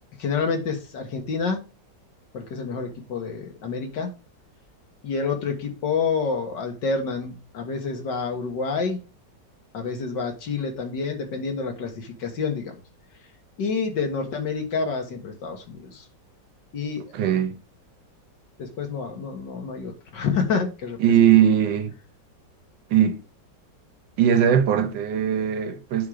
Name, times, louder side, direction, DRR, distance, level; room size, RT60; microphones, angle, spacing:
voice 1, 0.2-1.6 2.3-4.1 5.0-9.0 9.7-12.7 13.6-16.0 16.7-17.0 18.6-21.0, left 5 dB, 75° left, 2.2 m, -28 dB
voice 2, 17.1-17.5 21.0-21.9 22.9-23.2 24.2-26.1, right 9 dB, 80° right, 1.6 m, -20 dB
9.2 x 3.7 x 5.0 m
omnidirectional pair, 1.9 m